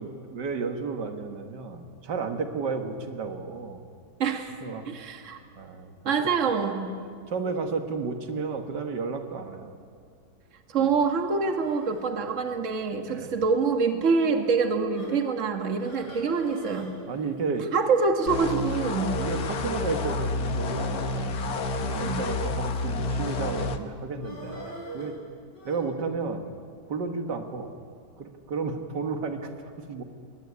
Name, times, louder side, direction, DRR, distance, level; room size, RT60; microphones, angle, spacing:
voice 1, 0.0-3.8 4.6-4.8 5.6-6.1 7.3-9.7 10.8-10.9 13.1-13.3 17.1-17.7 18.9-25.2 25.7-26.4 26.9-27.7 28.2-30.0, right 4 dB, 85° right, 6 dB, 2.1 m, -33 dB
voice 2, 4.2-4.5 4.9-5.4 6.1-7.0 10.7-16.9 17.7-19.2 22.0-22.2, right 5 dB, 50° right, 5 dB, 1.8 m, -25 dB
sound 1, 11.4-12.1 12.9-13.2 13.6-13.7 14.2-14.4 14.9-15.2 15.7-16.9 17.1-17.2 17.5-17.6 18.2-18.4 19.7-20.1 20.7-22.0 22.8-23.2 24.2-25.8, equal, 80° left, 6.8 m, -44 dB
sound 2, 18.3-23.8, left 3 dB, 65° left, 1.6 m, -29 dB
22.0 x 18.0 x 9.8 m, 2.2 s
omnidirectional pair, 1.8 m